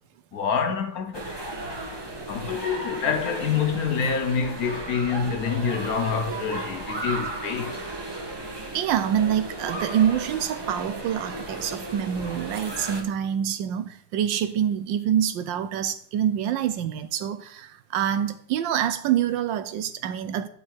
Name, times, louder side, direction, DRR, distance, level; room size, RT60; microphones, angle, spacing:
voice 1, 0.3-1.4 2.3-7.8, left 6 dB, 60° left, 1.1 m, -27 dB
sound 1, 1.1-13.0, right 2 dB, 20° right, 0.8 m, -35 dB
voice 2, 8.7-20.5, right 9 dB, 80° right, 1.3 m, -26 dB
9.0 x 5.6 x 4.5 m
omnidirectional pair, 2.1 m